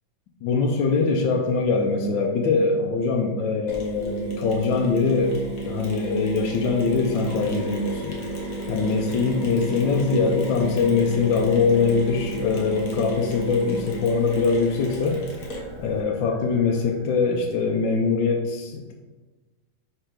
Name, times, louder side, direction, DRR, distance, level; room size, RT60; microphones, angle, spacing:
voice 1, 0.4-5.4 5.6-8.1 8.7-15.2 15.8-18.9, left 4 dB, 80° left, 1 dB, 1.4 m, -22 dB
Mechanisms, 3.7-16.0, equal, 50° left, 1.4 m, -37 dB
sound 1, 4.0-14.0, right 2 dB, 80° right, 1.9 m, -34 dB
sound 2, 7.3-17.8, equal, 65° right, 1.8 m, -42 dB
4.5 x 4.5 x 5.0 m, 1.2 s
omnidirectional pair, 2.0 m